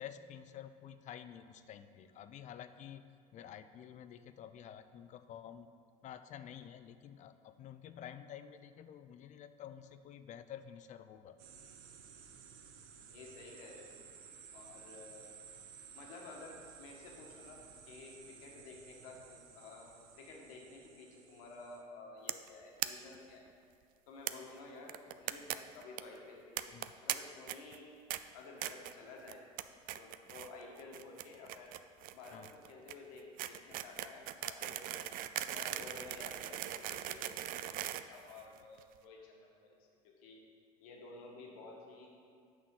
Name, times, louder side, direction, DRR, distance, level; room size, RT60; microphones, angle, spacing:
voice 1, 0.0-5.7 6.0-11.4 26.7-26.9 32.3-32.5, left 9 dB, 40° left, 11 dB, 0.5 m, -50 dB
sound 1, 11.4-21.8, right 7 dB, 75° right, 0.8 m, -56 dB
voice 2, 13.1-14.1 14.5-15.3 15.9-17.6 17.9-19.9 20.1-23.4 24.1-26.7 27.0-27.9 28.3-29.4 29.9-31.7 32.1-35.0 35.5-39.7 40.2-40.4 40.8-42.1, left 3 dB, 75° left, -1 dB, 1.5 m, -52 dB
sound 2, 22.3-22.5 22.8-22.9 23.1-23.2 23.5-23.6 24.3-24.4 24.9-25.6 25.8-26.0 26.6-27.1 27.5-27.8 28.1-28.2 28.6-28.9 29.3-29.6 29.9-30.5 30.8-38.8, right 13 dB, 50° right, 0.4 m, -39 dB
8.8 x 5.9 x 3.7 m, 2.2 s
hypercardioid pair, 85°, 18 cm